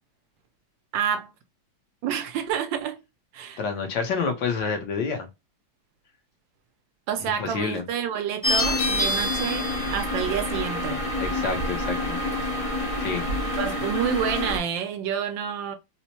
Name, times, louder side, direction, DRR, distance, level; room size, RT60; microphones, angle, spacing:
voice 1, 0.9-1.3 2.0-3.0 3.3-3.6 7.1-11.0 13.6-15.8, right 8 dB, 75° right, 1.2 m, -28 dB
voice 2, 3.6-5.3 7.2-7.8 11.2-12.2 13.0-13.3, left 5 dB, 70° left, 1.5 m, -28 dB
sound 1, 8.4-14.6, left 1 dB, 50° left, 0.4 m, -27 dB
4.3 x 2.1 x 2.8 m
omnidirectional pair, 2.2 m